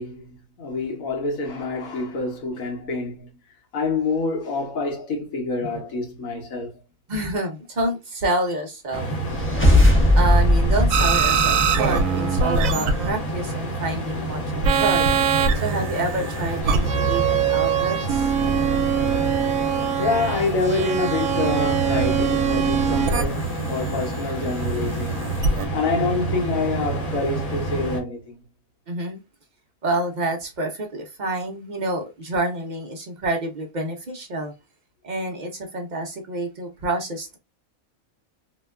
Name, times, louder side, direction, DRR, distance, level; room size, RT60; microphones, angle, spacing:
voice 1, 0.0-3.3 3.7-6.8 9.9-10.0 20.0-25.4 25.7-28.4, left 3 dB, 70° left, 1.3 m, -27 dB
voice 2, 7.1-9.1 10.1-15.1 15.5-18.3 28.9-29.2 29.8-34.5 35.0-37.4, right 2 dB, 55° right, 0.5 m, -28 dB
sound 1, 8.9-28.0, right 2 dB, 30° left, 0.8 m, -29 dB
sound 2, 9.3-12.0, left 1 dB, 15° left, 0.4 m, -18 dB
sound 3, 10.9-13.4 14.6-25.7, right 6 dB, 75° right, 0.9 m, -23 dB
2.9 x 2.1 x 2.2 m
omnidirectional pair, 1.5 m